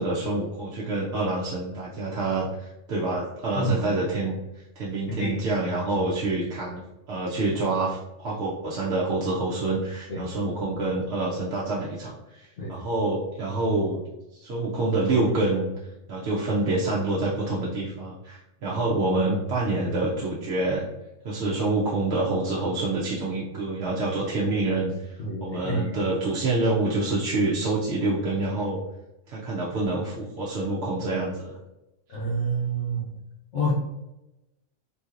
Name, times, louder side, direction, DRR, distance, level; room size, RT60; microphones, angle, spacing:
voice 1, 0.0-4.3 4.8-6.8 7.1-14.0 14.3-15.7 16.1-20.8 21.2-25.2 25.4-28.8 29.3-31.6, right 2 dB, 60° right, -6 dB, 0.9 m, -27 dB
voice 2, 25.2-26.0 32.1-33.1 33.5-33.7, right 2 dB, 65° left, -7 dB, 1.0 m, -28 dB
3.7 x 2.8 x 2.4 m, 0.93 s
omnidirectional pair, 1.4 m